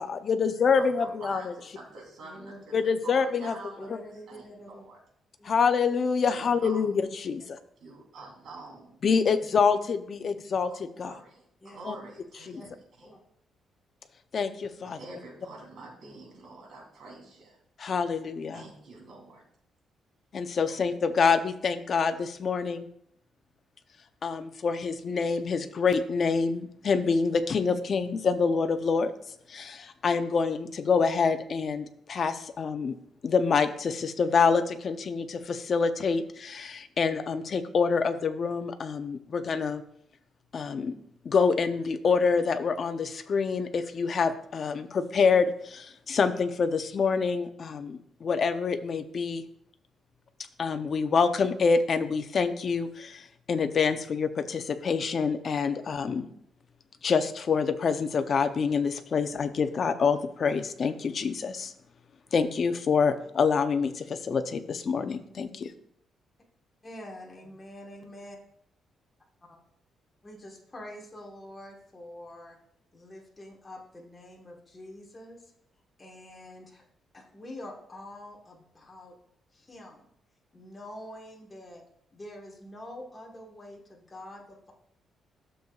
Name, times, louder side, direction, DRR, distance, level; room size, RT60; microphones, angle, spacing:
voice 1, 0.0-1.5 2.7-3.5 5.4-7.6 9.0-11.1 11.9-12.0 12.5-12.6 14.3-15.0 17.8-18.6 20.3-22.9 24.2-29.1 29.5-33.0 33.2-39.8 40.5-40.9 41.2-49.4 50.6-56.3 57.0-61.7 62.3-65.7, left 5 dB, 45° left, 9 dB, 0.6 m, -26 dB
voice 2, 0.8-5.0 6.2-6.9 7.8-9.0 11.0-13.1 14.8-17.6 18.5-19.4 20.7-20.8, right 3 dB, 60° right, -1 dB, 3.1 m, -46 dB
voice 3, 2.2-2.6 3.8-4.8 5.4-5.6 8.1-8.3 9.1-9.2 11.6-11.8 12.5-12.7 13.0-13.2 66.8-68.4 70.2-72.6 72.9-75.5 76.0-76.8 77.1-79.1 79.5-80.0 80.5-81.8 82.1-84.7, left 1 dB, 20° left, -1 dB, 1.3 m, -46 dB
12.5 x 6.7 x 2.3 m, 0.71 s
cardioid pair, 140°, 0 cm